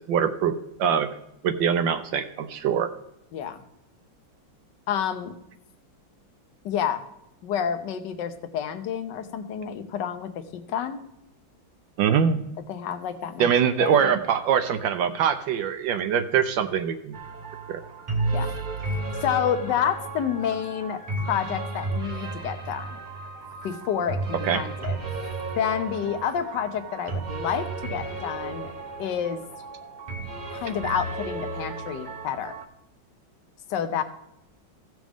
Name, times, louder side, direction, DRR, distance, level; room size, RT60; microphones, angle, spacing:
voice 1, 0.1-0.5 0.8-1.1 1.4-2.9 12.0-12.4 13.4-17.2 17.7-17.8 24.4-24.6, right 8 dB, 75° right, 7 dB, 1.3 m, -23 dB
voice 2, 3.3-3.6 4.9-5.3 6.6-7.1 7.4-11.0 12.7-13.5 13.8-14.2 18.3-18.6 19.2-23.0 23.6-25.0 25.6-28.7 29.0-29.4 30.5-32.5 33.7-34.0, left 8 dB, 65° left, 9 dB, 1.4 m, -29 dB
sound 1, 17.1-32.6, right 3 dB, 45° right, 0.6 m, -33 dB
16.0 x 6.2 x 3.5 m, 0.83 s
omnidirectional pair, 2.2 m